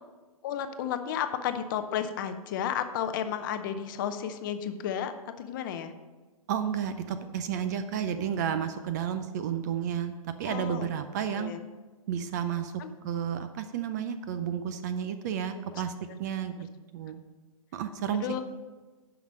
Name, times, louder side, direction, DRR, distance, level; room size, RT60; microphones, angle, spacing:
voice 1, 0.4-5.9 10.4-10.9 11.3-11.6 12.8-12.9 15.5-15.6 18.1-18.4, left 9 dB, 35° left, 9 dB, 0.6 m, -32 dB
voice 2, 6.5-11.5 12.1-12.7 13.0-15.9 16.2-16.7 16.9-17.2 17.7-18.3, right 8 dB, 30° right, 10 dB, 0.4 m, -31 dB
9.2 x 5.9 x 5.3 m, 1.2 s
hypercardioid pair, 145°, 19 cm